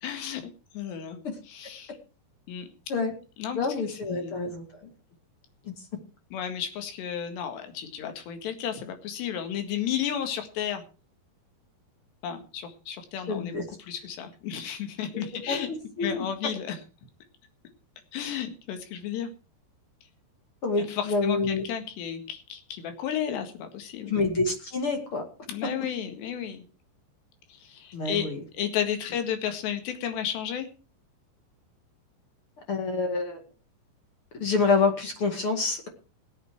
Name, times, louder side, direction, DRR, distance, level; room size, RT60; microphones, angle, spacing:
voice 1, 0.0-1.2 1.5-2.0 2.5-2.7 3.4-4.5 6.3-10.8 12.2-15.7 16.0-16.8 18.1-19.3 20.8-24.1 25.5-26.6 27.5-30.7, left 9 dB, 70° left, 7 dB, 3.9 m, -33 dB
voice 2, 3.5-4.9 5.6-5.7 13.3-13.6 15.1-15.6 16.0-16.2 20.6-21.6 24.1-25.2 27.9-28.4 32.7-33.4 34.3-35.9, left 4 dB, 40° left, 4 dB, 2.2 m, -27 dB
20.5 x 8.3 x 4.8 m, 0.35 s
omnidirectional pair, 5.3 m